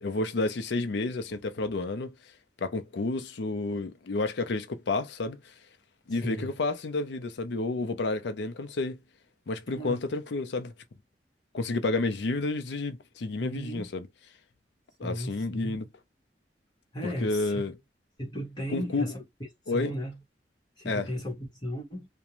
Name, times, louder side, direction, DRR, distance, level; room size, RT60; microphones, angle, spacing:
voice 1, 0.0-2.1 2.6-5.5 6.1-9.0 9.5-10.7 11.5-14.1 15.0-15.9 17.2-17.8 18.7-19.1 19.7-19.9 20.9-21.1, left 3 dB, 80° left, 0.5 m, -30 dB
voice 2, 9.7-10.0 13.4-13.9 15.0-15.8 16.9-17.7 18.2-19.2 19.7-20.2 20.8-22.1, equal, 25° left, 1.0 m, -35 dB
2.5 x 2.1 x 2.9 m
head